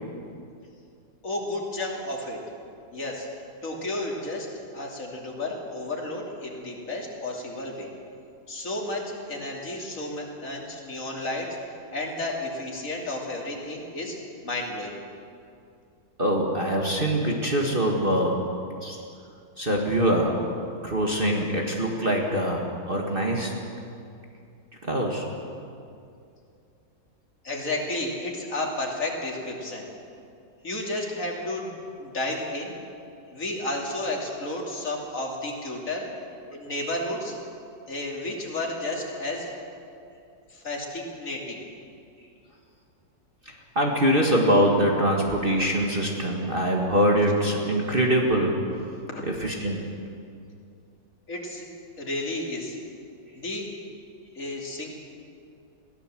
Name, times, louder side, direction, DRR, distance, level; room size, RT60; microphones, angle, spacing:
voice 1, 1.2-2.4 2.9-3.3 3.6-4.5 4.7-7.9 8.5-11.6 11.9-14.2 14.4-15.0 27.4-29.9 30.6-32.8 33.3-36.1 36.5-37.4 37.9-39.5 40.5-41.6 49.1-49.3 51.3-51.7 52.0-52.8 53.3-53.7 54.3-54.9, left 1 dB, 45° left, -1 dB, 3.3 m, -32 dB
voice 2, 16.2-18.4 18.8-19.0 19.6-20.4 20.8-23.5 24.8-25.3 43.5-48.6 49.4-49.8, equal, 30° right, 0 dB, 1.9 m, -23 dB
22.0 x 15.0 x 7.7 m, 2.5 s
omnidirectional pair, 2.0 m